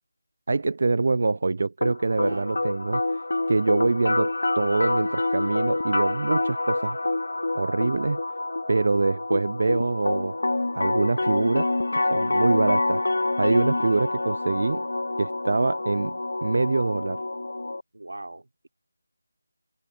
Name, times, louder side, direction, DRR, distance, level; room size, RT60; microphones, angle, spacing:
voice 1, 0.5-3.2 3.5-7.0 7.5-8.2 8.7-10.4 10.7-14.8 15.2-16.2 16.4-17.2, right 3 dB, 55° right, 0.5 m, -25 dB
sound 1, 1.8-17.8, left 2 dB, 75° left, 0.4 m, -27 dB
voice 2, 2.2-2.7 17.9-18.7, right 2 dB, 80° right, 3.6 m, -40 dB
figure-of-eight pair, 165°, 0 cm